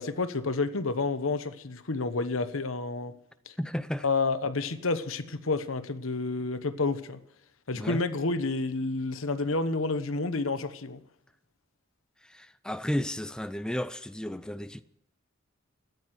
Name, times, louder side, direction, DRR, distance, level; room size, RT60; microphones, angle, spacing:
voice 1, 0.0-3.1 3.5-3.6 4.0-7.2 7.7-11.0, left 3 dB, 75° left, 1.1 m, -29 dB
voice 2, 3.6-4.1 7.7-8.0 12.2-14.8, equal, 5° left, 0.5 m, -33 dB
14.0 x 9.6 x 9.5 m
head